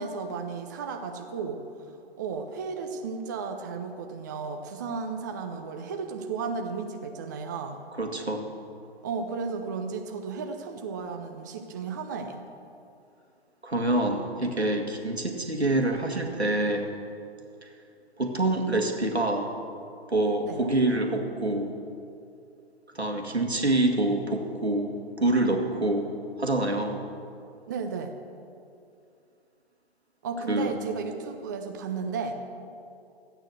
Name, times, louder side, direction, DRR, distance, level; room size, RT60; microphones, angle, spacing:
voice 1, 0.0-1.6 2.2-7.8 9.0-12.4 20.4-20.6 27.7-28.1 30.2-32.3, right 5 dB, 20° right, 5 dB, 0.5 m, -34 dB
voice 2, 8.0-8.5 13.6-16.9 17.6-17.7 18.2-19.5 20.1-21.7 22.9-26.1 26.4-27.0 30.5-30.7, right 2 dB, 85° right, 3 dB, 1.9 m, -26 dB
13.5 x 8.9 x 6.5 m, 2.5 s
figure-of-eight pair, 130°, 32 cm